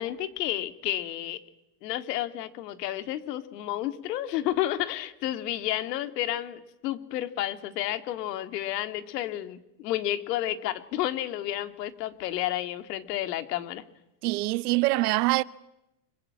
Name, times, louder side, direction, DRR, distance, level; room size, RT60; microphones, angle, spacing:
voice 1, 0.0-1.4 1.8-13.8, left 13 dB, 70° left, 2.3 m, -31 dB
voice 2, 14.2-15.4, right 20 dB, 65° right, 1.0 m, -24 dB
26.0 x 24.0 x 8.7 m
supercardioid pair, 170°, 49 cm